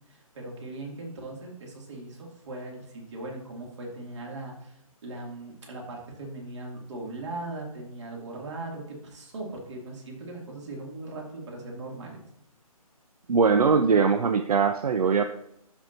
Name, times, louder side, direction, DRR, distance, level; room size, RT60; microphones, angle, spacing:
voice 1, 0.1-12.2, right 2 dB, 50° right, 0 dB, 2.3 m, -39 dB
voice 2, 13.3-15.2, right 5 dB, 80° right, 9 dB, 0.5 m, -21 dB
12.5 x 4.5 x 2.6 m, 0.78 s
hypercardioid pair, 150°, 19 cm